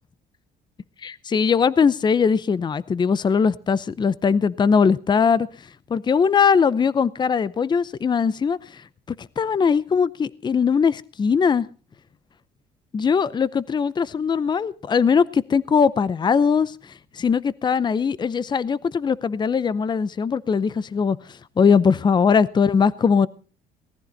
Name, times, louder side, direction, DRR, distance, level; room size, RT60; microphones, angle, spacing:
voice 1, 1.0-5.5 5.9-8.6 9.4-11.7 12.9-16.7 17.1-21.2 21.6-23.3, left 6 dB, 25° left, 0.6 m, -20 dB
18.5 x 14.0 x 4.0 m
cardioid pair, 110°, 17 cm